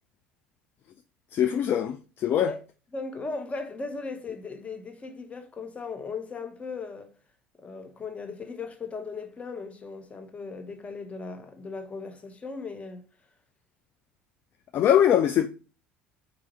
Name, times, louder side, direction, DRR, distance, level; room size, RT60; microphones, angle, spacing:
voice 1, 1.3-2.5 14.7-15.5, left 10 dB, 40° left, 0.3 m, -22 dB
voice 2, 2.9-7.1 7.6-13.0, left 4 dB, 25° left, 0.9 m, -37 dB
4.7 x 2.5 x 4.3 m
figure-of-eight pair, 65°, 6 cm